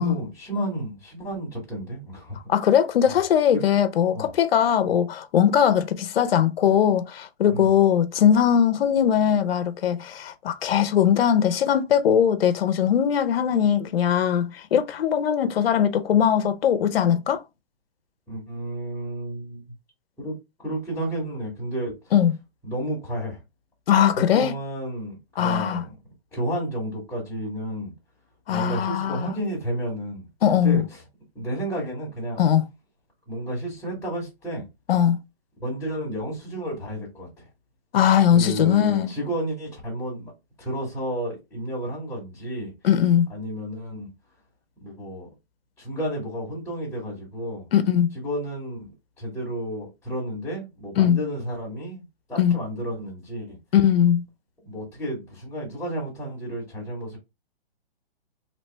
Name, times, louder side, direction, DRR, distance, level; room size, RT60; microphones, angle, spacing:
voice 1, 0.0-2.4 3.1-3.2 3.5-3.6 4.1-4.3 7.5-7.7 18.3-19.6 20.2-21.9 22.6-23.4 24.3-25.9 26.3-27.9 28.5-30.2 30.6-31.0 31.3-32.4 33.3-34.7 35.6-37.5 38.3-40.3 40.6-42.7 43.3-44.1 44.8-45.3 45.8-47.7 48.1-48.9 49.2-52.0 52.3-53.6 54.6-57.2, equal, 5° left, 1.1 m, -31 dB
voice 2, 2.5-17.4 22.1-22.4 23.9-24.6 25.4-25.8 28.5-29.4 30.4-30.9 32.4-32.7 34.9-35.2 37.9-39.1 42.8-43.3 47.7-48.2 51.0-51.2 52.4-52.6 53.7-54.2, left 9 dB, 65° left, 0.6 m, -20 dB
3.1 x 2.9 x 3.2 m
hypercardioid pair, 155°, 31 cm